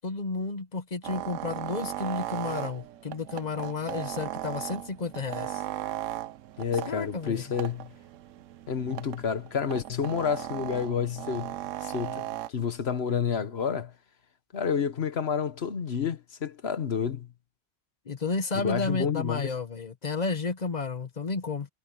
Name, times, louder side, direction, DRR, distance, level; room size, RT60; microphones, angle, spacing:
voice 1, 0.0-5.6 6.9-7.4 18.1-21.7, left 4 dB, 35° left, 1.0 m, -32 dB
sound 1, 1.0-12.5, right 13 dB, 85° right, 1.0 m, -37 dB
voice 2, 6.6-7.9 8.7-11.5 11.8-13.9 14.5-17.3 18.5-19.5, left 7 dB, 55° left, 1.4 m, -29 dB
omnidirectional pair, 1.3 m